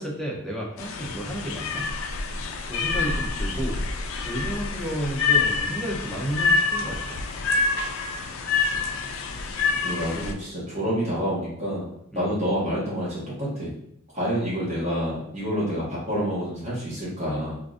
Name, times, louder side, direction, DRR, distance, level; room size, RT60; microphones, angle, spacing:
voice 1, 0.0-1.9 2.7-3.8 4.2-7.0 12.1-12.3, right 1 dB, ahead, -3 dB, 0.5 m, -32 dB
sound 1, 0.8-10.3, left 4 dB, 70° left, 0.4 m, -27 dB
voice 2, 2.9-3.6 8.6-8.9 9.8-13.7 14.1-17.6, equal, 30° right, -7 dB, 1.2 m, -28 dB
3.7 x 2.5 x 2.4 m, 0.72 s
head